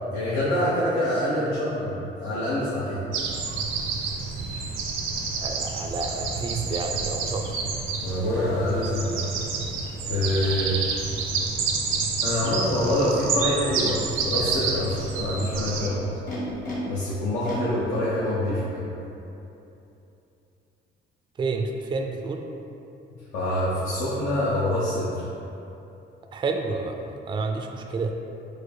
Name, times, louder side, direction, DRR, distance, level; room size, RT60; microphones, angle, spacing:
voice 1, 0.1-3.0 8.0-9.2 10.1-10.8 12.2-16.1 16.8-18.9 23.3-25.2, left 1 dB, 80° left, -9 dB, 0.9 m, -26 dB
sound 1, 3.1-15.9, right 4 dB, 80° right, 0.6 m, -29 dB
voice 2, 5.4-7.4 21.4-22.4 26.3-28.1, right 3 dB, 25° right, 3 dB, 0.3 m, -29 dB
Animal, 12.9-13.0 13.7-14.2 15.1-16.7 17.4-18.7, left 1 dB, 45° left, 1.4 m, -38 dB
4.7 x 2.0 x 4.7 m, 2.8 s
cardioid pair, 90°, 20 cm